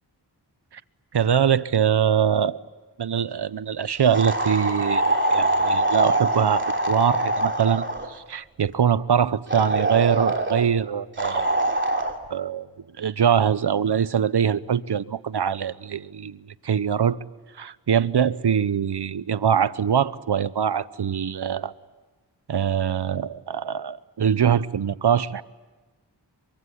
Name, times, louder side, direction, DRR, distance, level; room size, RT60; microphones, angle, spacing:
voice 1, 1.1-2.6 3.0-11.5 11.9-12.0 12.3-12.7 13.0-17.2 17.6-21.7 22.5-25.4, right 8 dB, 65° right, 16 dB, 0.9 m, -23 dB
sound 1, 4.1-8.1 9.5-10.7 11.2-12.1, right 1 dB, 25° right, 3.1 m, -23 dB
24.0 x 23.5 x 9.9 m, 1.2 s
cardioid pair, 45°, 42 cm